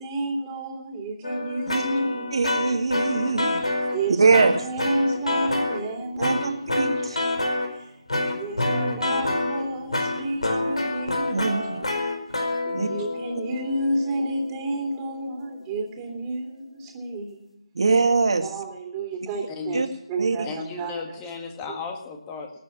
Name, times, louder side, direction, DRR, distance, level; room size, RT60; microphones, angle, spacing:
voice 1, 0.0-2.6 3.9-6.7 7.7-7.9 8.4-11.7 12.7-17.6 18.4-21.4, right 2 dB, 15° right, 1 dB, 3.2 m, -31 dB
sound 1, 1.2-4.0 4.3-5.8 6.2-7.7 8.1-15.1, left 2 dB, 80° left, 4.8 m, -27 dB
voice 2, 2.3-3.6 4.2-4.5 6.2-7.2 11.3-11.8 12.7-12.9 17.8-18.5 19.7-19.9 20.2-20.5, right 4 dB, 55° right, 6 dB, 2.1 m, -22 dB
voice 3, 19.5-19.9 20.4-22.5, left 4 dB, 15° left, 3 dB, 1.9 m, -34 dB
19.0 x 9.7 x 7.3 m, 0.70 s
figure-of-eight pair, 155°, 3 cm